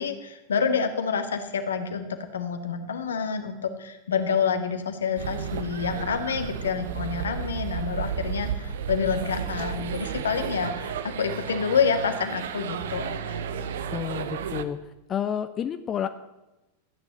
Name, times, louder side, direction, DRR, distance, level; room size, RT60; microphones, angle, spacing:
voice 1, 0.0-2.1 2.3-13.4, left 6 dB, 65° left, 7 dB, 1.9 m, -28 dB
sound 1, 5.2-14.6, right 8 dB, 60° right, 1.2 m, -33 dB
voice 2, 13.9-14.8 15.1-16.1, left 9 dB, 25° left, 10 dB, 0.9 m, -29 dB
15.0 x 9.9 x 9.0 m, 1.0 s
figure-of-eight pair, 90°, 0 cm